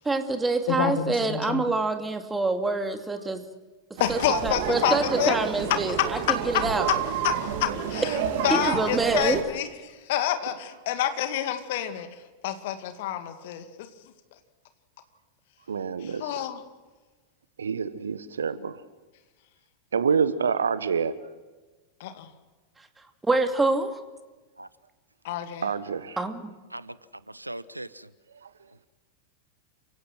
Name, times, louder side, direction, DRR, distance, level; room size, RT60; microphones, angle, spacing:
voice 1, 0.0-3.4 4.1-6.9 8.5-9.4 23.2-24.0 26.2-26.4, right 3 dB, 10° right, 7 dB, 2.3 m, -26 dB
voice 2, 0.7-1.7 4.0-5.4 6.0-6.4 7.2-8.2 8.4-9.7 10.1-12.1 12.4-13.6 16.0-16.6 22.0-22.3 25.2-25.7, left 11 dB, 50° left, 8 dB, 2.3 m, -28 dB
sound 1, 4.0-9.4, right 8 dB, 50° right, 3.1 m, -30 dB
voice 3, 15.7-16.3 17.6-18.8 19.9-21.1 25.6-26.2 28.4-28.5, right 6 dB, 70° right, 15 dB, 1.2 m, -27 dB
voice 4, 27.3-28.1, right 1 dB, 85° right, 18 dB, 0.7 m, -39 dB
29.0 x 17.0 x 6.3 m, 1.3 s
figure-of-eight pair, 90°, 0 cm